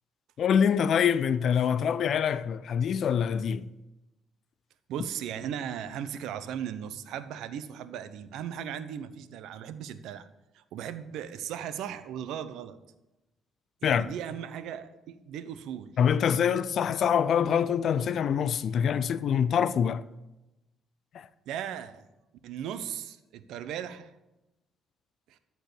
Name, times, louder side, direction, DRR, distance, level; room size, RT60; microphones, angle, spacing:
voice 1, 0.4-3.6 13.8-14.1 16.0-20.0 21.1-21.3, left 8 dB, 60° left, 0.5 m, -25 dB
voice 2, 4.9-10.3 10.5-12.8 13.8-16.0 21.5-22.0 22.4-24.1 25.3-25.4, right 9 dB, 80° right, 0.8 m, -37 dB
13.5 x 4.6 x 8.3 m
cardioid pair, 85°, 0 cm